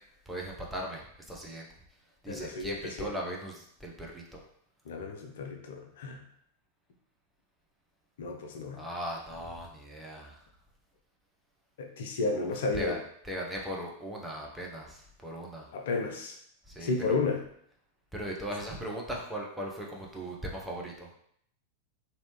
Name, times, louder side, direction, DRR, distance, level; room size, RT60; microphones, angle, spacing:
voice 1, 0.3-1.0 1.3-1.6 2.2-4.4 8.8-10.3 12.3-13.0 13.3-15.6 16.7-17.2 18.1-21.1, right 1 dB, 5° right, -2 dB, 0.7 m, -38 dB
voice 2, 2.3-3.1 4.9-6.2 8.2-8.8 11.8-13.0 15.7-16.4 16.8-17.4, left 3 dB, 60° left, 2 dB, 0.4 m, -32 dB
3.2 x 2.7 x 3.0 m, 0.69 s
figure-of-eight pair, 90°, 0 cm